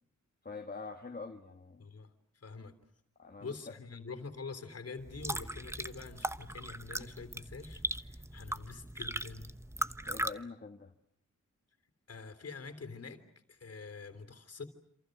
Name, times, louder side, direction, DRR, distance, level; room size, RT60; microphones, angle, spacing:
voice 1, 0.4-1.8 3.2-3.7 10.1-10.9, left 4 dB, 35° left, 3 dB, 1.8 m, -45 dB
voice 2, 1.8-2.7 3.4-9.5 12.1-14.6, left 4 dB, 55° left, 10 dB, 3.5 m, -46 dB
sound 1, 5.0-10.3, right 1 dB, 10° right, 1.1 m, -39 dB
27.5 x 27.5 x 6.7 m, 0.70 s
cardioid pair, 75°, 29 cm